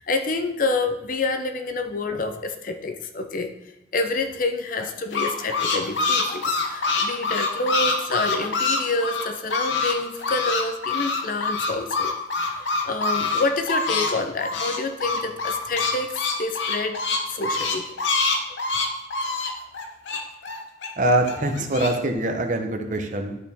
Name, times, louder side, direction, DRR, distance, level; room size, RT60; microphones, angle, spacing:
voice 1, 0.0-3.5 3.9-17.0 17.3-17.9, left 3 dB, 45° left, 7 dB, 0.6 m, -28 dB
sound 1, 4.8-9.9 10.2-14.1 14.4-20.9 21.3-21.9, left 3 dB, 80° left, 0.9 m, -25 dB
voice 2, 21.0-23.4, right 1 dB, 40° right, 4 dB, 0.8 m, -23 dB
11.0 x 4.4 x 3.5 m, 0.91 s
head